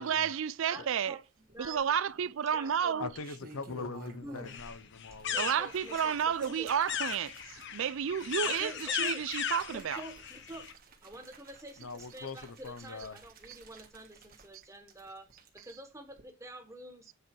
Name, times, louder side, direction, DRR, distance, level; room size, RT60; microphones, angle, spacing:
voice 1, 0.0-1.1 1.6-3.1 5.4-10.0, right 8 dB, 65° right, 0.4 m, -31 dB
voice 2, 0.7-1.8 2.2-3.1 4.2-4.5 5.3-6.7 8.4-9.2 9.7-10.7 11.0-15.3 15.5-17.1, right 1 dB, 15° right, 1.5 m, -48 dB
sound 1, 1.5-2.1 3.0-4.8 5.1-15.7 16.1-16.2, right 3 dB, 45° right, 1.6 m, -54 dB
voice 3, 3.0-5.4 11.8-13.2, left 4 dB, 85° left, 0.8 m, -41 dB
sound 2, 4.5-10.7, left 8 dB, 55° left, 0.8 m, -37 dB
8.1 x 4.5 x 4.6 m
head